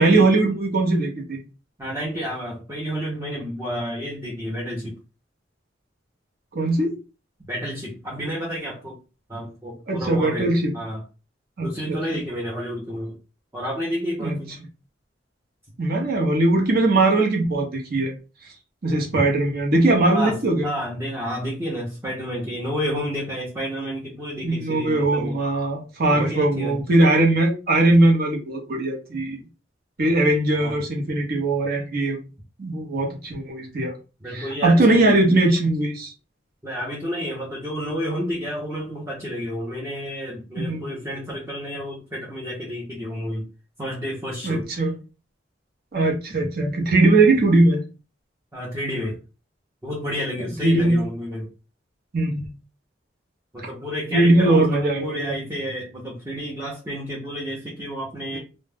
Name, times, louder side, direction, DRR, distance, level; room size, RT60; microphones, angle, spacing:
voice 1, 0.0-1.4 6.5-7.0 9.9-10.8 11.6-12.2 14.2-14.4 15.8-18.1 18.8-20.7 24.4-29.4 30.0-32.2 32.6-33.9 34.3-36.1 40.6-40.9 44.4-44.9 45.9-47.8 50.6-51.0 52.1-52.5 54.1-55.3 58.3-58.4, right 2 dB, 55° right, 1 dB, 0.7 m, -20 dB
voice 2, 1.8-5.0 7.5-9.0 9.3-11.0 11.6-13.2 13.5-14.5 20.1-25.4 26.1-26.8 30.6-30.8 34.2-35.2 36.6-43.5 43.8-44.7 48.5-49.2 49.8-51.5 53.5-58.4, equal, 15° right, -4 dB, 0.6 m, -30 dB
2.2 x 2.0 x 3.2 m, 0.31 s
head